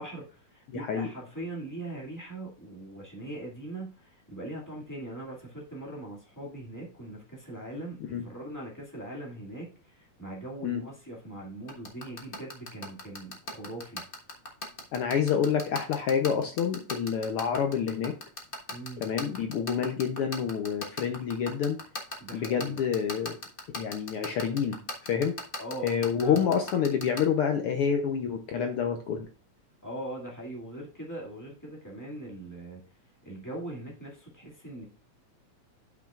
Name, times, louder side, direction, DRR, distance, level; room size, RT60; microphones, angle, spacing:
voice 1, 0.0-14.0 18.7-19.1 22.2-22.8 25.6-26.4 29.8-32.8 33.2-34.8, right 1 dB, 10° left, -4 dB, 1.5 m, -41 dB
voice 2, 0.7-1.1 8.1-8.2 10.6-10.8 14.9-18.1 19.0-21.8 22.3-23.4 23.8-25.4 25.8-29.3, left 7 dB, 75° left, 4 dB, 1.3 m, -28 dB
sound 1, 11.7-27.2, left 2 dB, 40° left, 0.7 m, -36 dB
11.5 x 6.0 x 2.4 m, 0.38 s
omnidirectional pair, 3.3 m